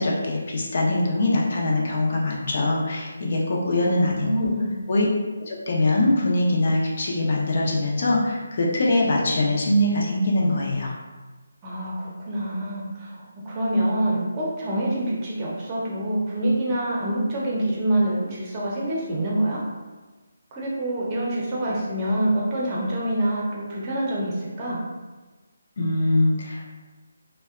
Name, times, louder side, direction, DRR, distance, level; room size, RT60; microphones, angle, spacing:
voice 1, 0.0-4.5 4.9-5.1 5.4-10.9 25.8-26.7, left 2 dB, 50° left, -3 dB, 0.6 m, -22 dB
voice 2, 3.7-4.8 11.6-13.1 13.5-19.6 20.5-24.8, right 1 dB, 25° right, -5 dB, 0.7 m, -26 dB
2.6 x 2.1 x 2.4 m, 1.2 s
figure-of-eight pair, 160°, 0 cm